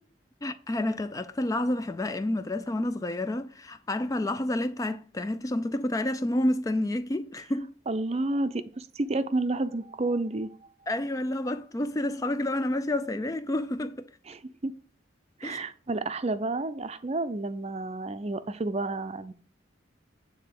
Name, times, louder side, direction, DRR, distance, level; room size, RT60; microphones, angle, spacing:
voice 1, 0.4-7.7 10.9-14.1 15.4-15.6, left 1 dB, 15° left, 0.3 m, -29 dB
voice 2, 7.9-10.5 14.3-14.7 15.4-19.3, right 2 dB, 30° right, 0.5 m, -30 dB
8.8 x 3.9 x 6.6 m
head